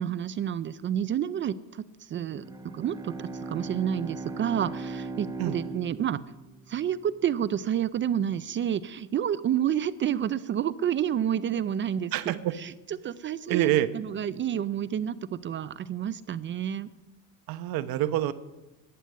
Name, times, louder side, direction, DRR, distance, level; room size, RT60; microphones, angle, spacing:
voice 1, 0.0-2.4 2.7-5.3 5.5-6.2 6.7-12.7 13.0-16.9, right 9 dB, 30° right, 15 dB, 0.4 m, -29 dB
Bowed string instrument, 2.3-7.1, right 3 dB, 10° right, 0.8 m, -38 dB
voice 2, 12.1-12.5 13.5-13.9 17.5-18.3, right 13 dB, 65° right, 11 dB, 1.1 m, -26 dB
11.5 x 9.8 x 9.4 m, 1.0 s
cardioid pair, 145°, 39 cm